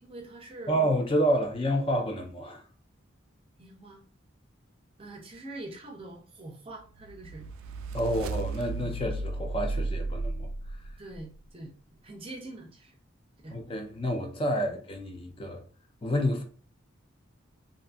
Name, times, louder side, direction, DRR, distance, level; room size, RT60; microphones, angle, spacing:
voice 1, 0.0-0.8 3.6-4.0 5.0-7.5 11.0-11.7 12.0-13.0 13.4-13.6, right 2 dB, 25° right, 0.5 m, -44 dB
voice 2, 0.7-2.6 7.9-10.5 13.5-15.6 16.0-16.4, equal, 25° left, 0.4 m, -29 dB
sound 1, 7.0-11.2, right 2 dB, 90° right, 0.3 m, -34 dB
2.6 x 2.5 x 2.4 m
head